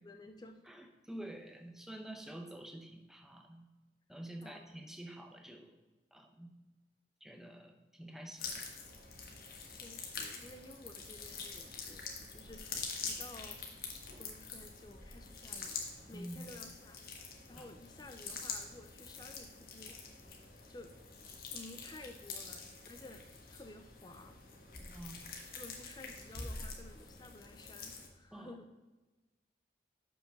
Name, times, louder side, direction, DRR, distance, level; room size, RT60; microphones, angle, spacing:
voice 1, 0.0-0.6 4.4-4.8 9.6-13.6 14.2-15.8 16.1-17.2 17.5-20.0 20.7-20.9 21.2-23.2 23.5-24.4 25.6-28.7, left 2 dB, 25° left, 6 dB, 0.5 m, -53 dB
voice 2, 0.7-3.7 4.1-5.7 6.1-6.5 7.2-8.7 16.1-16.4 17.6-17.7 24.8-25.2 28.3-28.5, right 1 dB, 5° right, 4 dB, 0.9 m, -48 dB
sound 1, 8.4-28.1, left 4 dB, 55° left, 1.5 m, -46 dB
7.0 x 5.9 x 5.8 m, 1.2 s
head